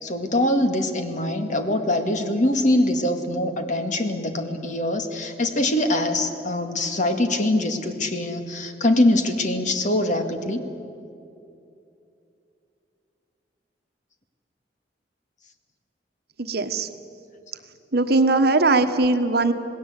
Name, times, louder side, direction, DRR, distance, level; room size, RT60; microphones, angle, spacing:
voice 1, 0.0-10.7, left 1 dB, 45° left, 6 dB, 2.0 m, -23 dB
voice 2, 16.4-16.9 17.9-19.5, right 3 dB, 60° right, 9 dB, 1.3 m, -20 dB
27.5 x 19.0 x 8.3 m, 2.6 s
head